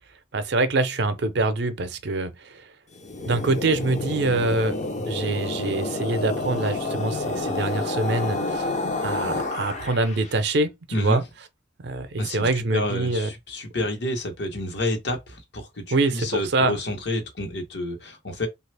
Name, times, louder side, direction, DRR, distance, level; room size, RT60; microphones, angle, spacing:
voice 1, 0.3-2.6 3.3-4.8 5.1-8.7 9.0-11.2 11.8-13.3 15.9-16.8, right 2 dB, 60° right, 0.5 m, -25 dB
sound 1, 2.9-10.3, left 2 dB, 40° left, 0.6 m, -29 dB
voice 2, 10.9-11.2 12.2-18.5, left 1 dB, 60° left, 1.0 m, -29 dB
3.3 x 2.4 x 3.3 m
head